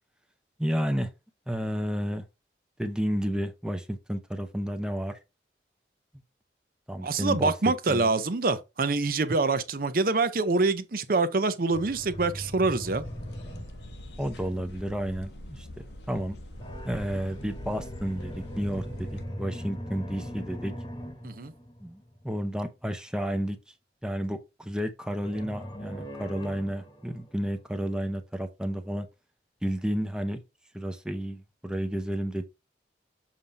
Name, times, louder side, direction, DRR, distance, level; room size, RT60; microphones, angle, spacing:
voice 1, 0.6-1.1 1.5-2.2 2.8-5.1 6.9-7.5 7.9-8.1 14.2-15.7 16.1-16.4 16.8-19.1 19.4-20.7 21.8-23.6 24.0-29.1 29.6-30.4 30.7-32.5, equal, 5° right, 0.7 m, -31 dB
voice 2, 7.0-13.0 21.2-21.5, right 3 dB, 50° right, 0.6 m, -25 dB
sound 1, 11.7-14.8 16.5-22.3 25.2-27.6, equal, 25° left, 1.2 m, -40 dB
sound 2, 13.0-19.3, left 1 dB, 70° left, 1.1 m, -44 dB
7.3 x 2.7 x 4.7 m
head